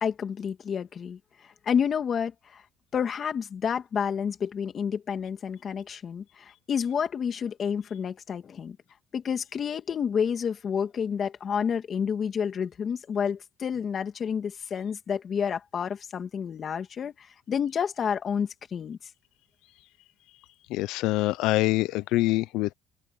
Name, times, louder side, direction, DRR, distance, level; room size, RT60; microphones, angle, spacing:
voice 1, 0.0-2.6 2.9-8.8 9.1-19.0, left 7 dB, 40° left, 2.5 m, -30 dB
voice 2, 20.7-22.7, left 18 dB, 80° left, 0.6 m, -25 dB
open air
cardioid pair, 125°, 0 cm